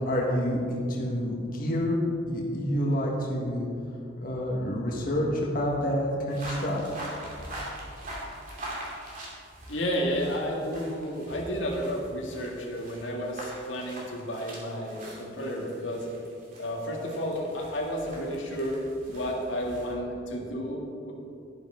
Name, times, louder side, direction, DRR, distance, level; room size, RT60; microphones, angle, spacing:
voice 1, 0.1-2.0 2.3-3.7 4.2-7.0, equal, 50° left, -3 dB, 1.6 m, -28 dB
sound 1, 6.3-19.9, right 1 dB, 45° right, 2.7 m, -43 dB
voice 2, 9.7-16.1 16.6-21.1, equal, 85° left, -1 dB, 1.8 m, -32 dB
11.5 x 10.0 x 3.8 m, 2.5 s
head